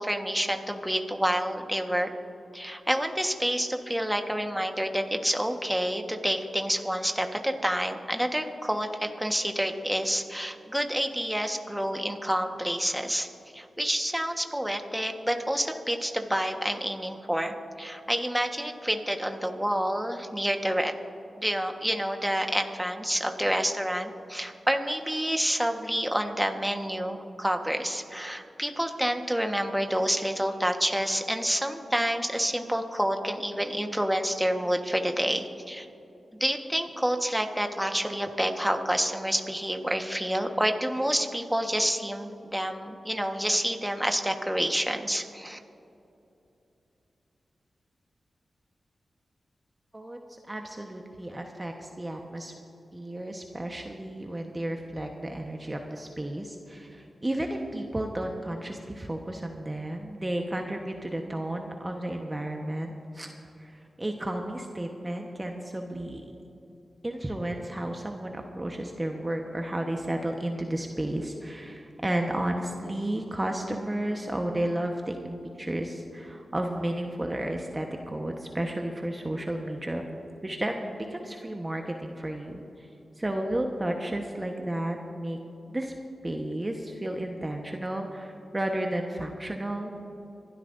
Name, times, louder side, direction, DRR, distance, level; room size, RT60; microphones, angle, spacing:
voice 1, 0.0-2.1 2.5-13.3 13.5-20.9 21.4-35.9 36.4-45.6, equal, 5° right, 4 dB, 1.4 m, -28 dB
voice 2, 49.9-52.5 52.9-66.3 67.0-80.0 80.4-82.9 83.2-85.4 85.7-85.9 86.2-90.0, right 1 dB, 25° right, 2 dB, 1.2 m, -33 dB
25.5 x 12.5 x 2.7 m, 2.8 s
cardioid pair, 45°, 0 cm